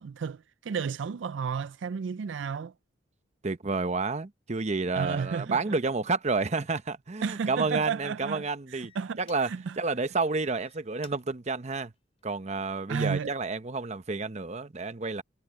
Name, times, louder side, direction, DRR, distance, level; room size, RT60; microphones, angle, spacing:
voice 1, 0.0-2.7 4.9-5.8 7.2-8.5 8.7-9.2 9.5-9.8 12.9-13.3, right 6 dB, 75° right, 0.4 m, -32 dB
voice 2, 3.4-8.9 9.2-9.5 9.8-11.9 12.2-15.2, right 3 dB, 35° right, 0.8 m, -30 dB
sound 1, 8.8-9.8 10.4-12.8 13.3-13.7, left 7 dB, 35° left, 3.1 m, -58 dB
head